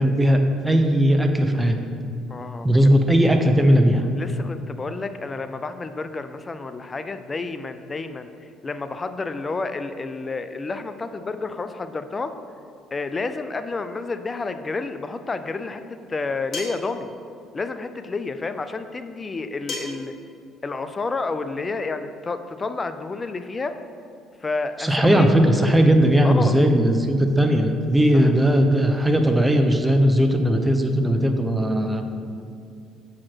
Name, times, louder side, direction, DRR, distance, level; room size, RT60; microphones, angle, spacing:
voice 1, 0.0-1.8 2.6-4.0 24.8-32.1, equal, 10° right, 5 dB, 0.7 m, -18 dB
voice 2, 2.3-2.7 4.1-8.3 8.6-12.3 12.9-15.8 16.1-17.1 17.5-20.1 20.6-23.8 24.4-25.3 26.2-26.6 28.1-28.3, left 3 dB, 30° left, 10 dB, 0.4 m, -30 dB
sound 1, 16.5-16.9 19.7-20.1, left 2 dB, 45° left, 1.6 m, -32 dB
7.2 x 4.8 x 4.5 m, 2.4 s
supercardioid pair, 75°, 0 cm